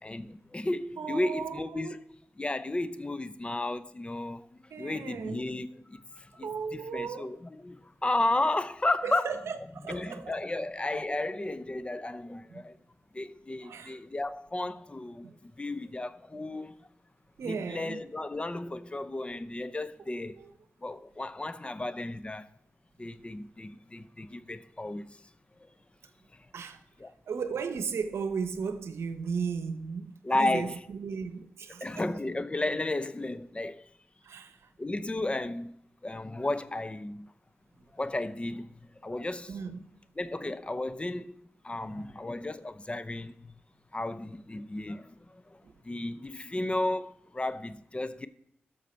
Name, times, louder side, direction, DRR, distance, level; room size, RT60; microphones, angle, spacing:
voice 1, 0.0-2.0 2.4-9.4 9.9-12.8 13.1-16.8 17.4-20.4 20.8-22.5 23.0-25.3 25.6-25.7 26.3-26.5 27.0-27.1 30.2-30.8 31.8-33.9 34.8-35.7 36.0-37.3 37.9-39.6 40.2-43.5 43.9-45.6 45.8-48.3, left 2 dB, 25° left, 0.6 m, -33 dB
voice 2, 1.0-2.0 4.7-5.5 6.4-7.4 9.0-10.4 12.5-12.6 13.6-14.0 15.2-15.3 17.4-18.0 20.1-20.5 26.5-26.8 27.3-31.9 34.2-34.7 39.5-40.0 45.6-45.7, right 6 dB, 80° right, 0.8 m, -36 dB
12.5 x 6.5 x 4.4 m
cardioid pair, 55°, 4 cm